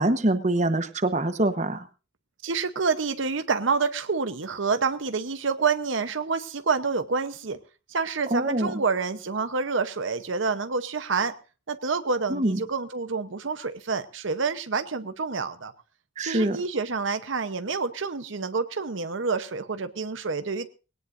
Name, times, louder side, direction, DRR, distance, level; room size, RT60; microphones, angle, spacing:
voice 1, 0.0-1.8 8.3-8.7 12.3-12.6 16.2-16.6, right 1 dB, 35° right, 10 dB, 1.1 m, -24 dB
voice 2, 2.4-7.6 7.9-11.3 11.7-15.7 16.2-20.7, right 4 dB, 75° right, 10 dB, 0.9 m, -28 dB
20.5 x 18.0 x 2.6 m, 0.33 s
head